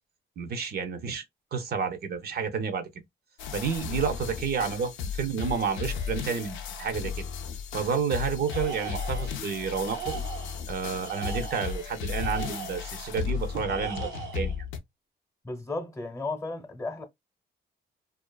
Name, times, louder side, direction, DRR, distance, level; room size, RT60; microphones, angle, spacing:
voice 1, 0.4-1.2 1.5-2.9 3.5-7.2 7.7-10.1 10.7-14.6, right 6 dB, 50° right, 0.5 m, -30 dB
sound 1, 3.4-14.8, left 6 dB, 80° left, 0.5 m, -35 dB
Tools, 8.5-9.4 9.8-10.6 11.0-12.9 13.6-14.6, right 7 dB, 90° right, 0.7 m, -39 dB
voice 2, 15.4-17.0, left 2 dB, 15° left, 0.7 m, -34 dB
2.4 x 2.4 x 2.3 m
cardioid pair, 90°, 20 cm